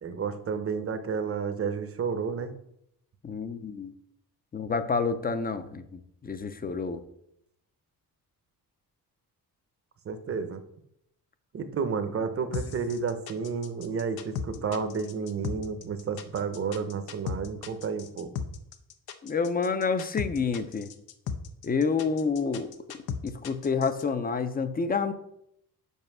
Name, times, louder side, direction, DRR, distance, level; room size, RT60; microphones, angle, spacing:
voice 1, 0.0-2.5 10.1-10.6 11.5-18.3, right 5 dB, 40° right, 9 dB, 0.7 m, -31 dB
voice 2, 3.2-3.9 4.5-7.0 19.2-20.9 21.6-22.7 23.2-25.1, left 5 dB, 25° left, 11 dB, 0.5 m, -28 dB
sound 1, 12.5-24.0, left 7 dB, 90° left, 0.7 m, -36 dB
5.5 x 5.1 x 6.0 m, 0.77 s
wide cardioid pair, 150°, 36 cm